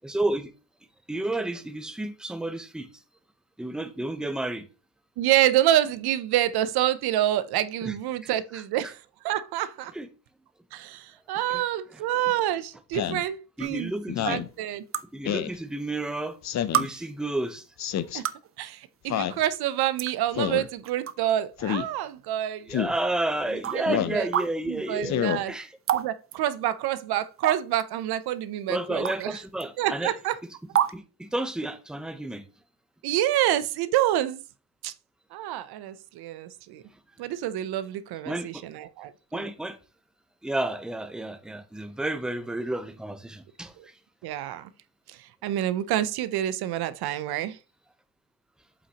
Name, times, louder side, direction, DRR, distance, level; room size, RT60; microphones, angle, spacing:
voice 1, 0.0-0.5 1.1-2.9 3.6-4.7 7.8-7.9 8.5-8.6 9.9-10.1 11.5-11.6 13.1-13.2 13.6-14.4 15.1-16.4 16.7-17.6 22.7-25.8 28.7-30.1 30.9-32.5 38.3-38.6 39.3-39.8 40.4-43.9, right 1 dB, ahead, 0.8 m, -31 dB
voice 2, 5.2-9.9 10.7-13.9 14.2-14.8 16.9-17.0 18.1-18.2 18.6-22.7 23.7-24.3 24.7-25.5 25.9-29.4 29.8-30.4 33.0-34.4 34.8-34.9 35.3-36.8 37.2-39.5 43.8-43.9 44.2-44.7 45.1-47.6, right 13 dB, 80° right, 0.7 m, -27 dB
Speech synthesizer, 12.9-13.2 14.1-14.5 15.2-15.5 16.4-16.9 17.8-18.2 19.1-19.4 20.3-20.7 21.6-21.9 22.7-23.0 23.9-24.2 25.0-25.4, left 10 dB, 45° left, 0.6 m, -28 dB
sound 1, 13.6-13.7 14.9-15.0 16.0-16.1 16.7-16.9 18.0-18.5 19.4-19.5 20.0-20.1 20.8-21.1 21.6-21.7 22.7-22.8 23.6-23.8 24.3-24.5 25.9-26.1 26.3-26.4 27.4-27.8 29.0-29.2 29.6-29.7 30.7-30.9, right 10 dB, 35° right, 0.5 m, -26 dB
8.1 x 5.7 x 2.9 m
cardioid pair, 110°, 38 cm